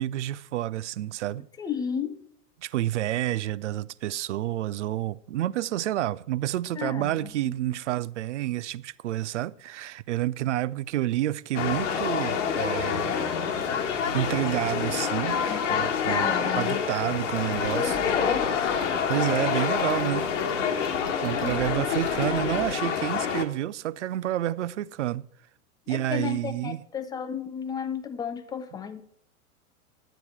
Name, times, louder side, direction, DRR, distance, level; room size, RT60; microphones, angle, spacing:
voice 1, 0.0-1.5 2.6-13.2 14.1-15.4 15.7-18.0 19.1-20.3 21.2-25.2 25.9-26.8, right 14 dB, 55° right, 0.5 m, -29 dB
voice 2, 1.6-2.2 6.8-7.8 15.5-16.8 17.7-18.5 21.4-21.7 25.9-29.0, left 7 dB, 10° left, 0.5 m, -33 dB
sound 1, 11.5-23.4, left 7 dB, 55° left, 1.3 m, -27 dB
sound 2, 17.4-22.7, right 5 dB, 35° right, 1.6 m, -46 dB
11.0 x 9.1 x 4.4 m
figure-of-eight pair, 95°, 43 cm